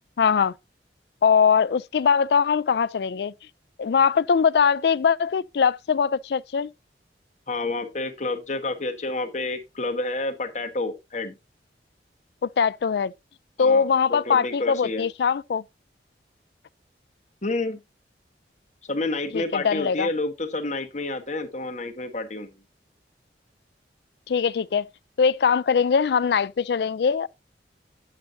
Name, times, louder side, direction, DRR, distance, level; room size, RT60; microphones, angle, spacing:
voice 1, 0.2-0.5 1.2-3.3 3.8-6.7 12.4-13.1 13.6-15.6 19.3-20.1 24.3-24.9 25.2-27.3, left 6 dB, 65° left, 0.4 m, -21 dB
voice 2, 7.5-11.4 13.6-15.1 17.4-17.8 18.8-22.5, left 2 dB, 40° left, 1.3 m, -29 dB
9.2 x 8.1 x 2.7 m
head